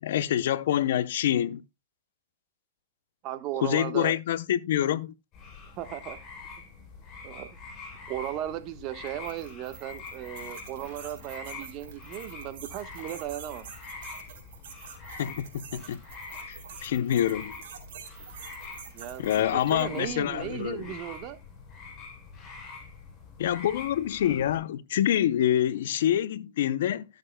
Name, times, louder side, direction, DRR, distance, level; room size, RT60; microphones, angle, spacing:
voice 1, 0.0-1.6 3.6-5.1 15.1-16.0 16.5-17.5 19.2-20.9 23.4-27.0, left 11 dB, 65° left, 0.6 m, -26 dB
voice 2, 3.2-4.1 5.8-6.2 7.2-7.5 8.1-13.7 18.9-21.4, right 12 dB, 40° right, 1.2 m, -36 dB
sound 1, 5.3-24.6, left 4 dB, 30° left, 7.2 m, -45 dB
sound 2, 9.1-20.0, right 8 dB, 60° right, 3.5 m, -47 dB
17.0 x 6.6 x 2.2 m
hypercardioid pair, 130°, 0 cm